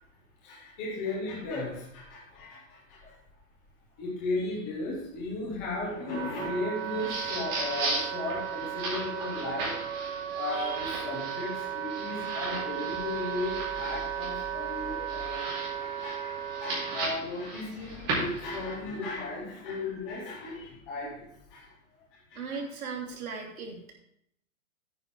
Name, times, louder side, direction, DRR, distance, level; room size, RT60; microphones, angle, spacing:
voice 1, 0.4-3.1 4.0-9.7 10.3-15.4 15.8-21.2 21.5-21.6 22.3-22.6, left 2 dB, 5° left, -5 dB, 0.4 m, -35 dB
Wind instrument woodwind instrument, 5.5-17.1, right 10 dB, 45° right, 0.8 m, -36 dB
sound 1, 6.7-18.8, right 2 dB, 25° right, 4.3 m, -37 dB
voice 2, 22.3-23.9, right 5 dB, 90° right, 0 dB, 3.3 m, -37 dB
9.9 x 9.6 x 3.5 m, 0.72 s
hypercardioid pair, 165°, 42 cm